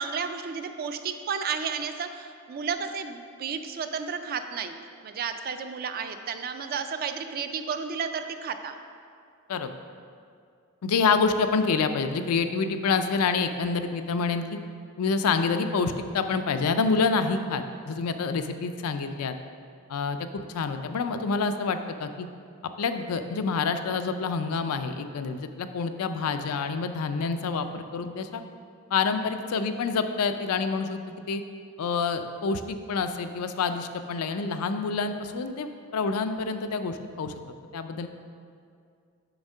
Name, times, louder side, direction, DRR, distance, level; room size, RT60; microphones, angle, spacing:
voice 1, 0.0-4.8 5.0-8.8, right 6 dB, 45° right, 8 dB, 0.3 m, -32 dB
voice 2, 10.8-14.6 15.0-19.3 19.9-22.3 22.8-28.4 28.9-31.0 31.3-31.4 31.8-37.3 37.7-38.1, left 4 dB, 85° left, 8 dB, 0.4 m, -27 dB
7.0 x 3.6 x 5.4 m, 2.3 s
head